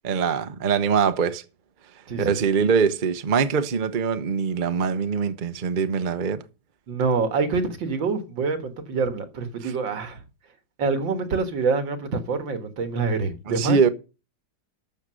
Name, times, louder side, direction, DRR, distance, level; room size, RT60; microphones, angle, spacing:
voice 1, 0.0-1.4 2.2-6.4 9.6-9.7 13.5-13.9, right 6 dB, 35° right, 0.8 m, -23 dB
voice 2, 2.1-2.5 6.9-10.2 10.8-13.8, right 4 dB, 80° right, 2.3 m, -26 dB
12.5 x 6.8 x 6.3 m
omnidirectional pair, 2.1 m